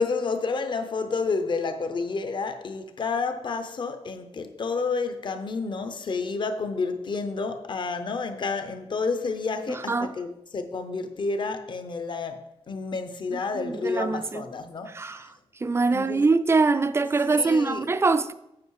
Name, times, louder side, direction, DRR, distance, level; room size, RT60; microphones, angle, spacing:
voice 1, 0.0-15.3 15.9-16.2 17.3-17.9, left 4 dB, 45° left, 0.7 m, -30 dB
voice 2, 9.7-10.1 13.3-14.4 14.9-15.3 15.6-18.3, right 3 dB, 25° right, 0.4 m, -24 dB
8.5 x 5.4 x 4.7 m
wide cardioid pair, 160°, 11 cm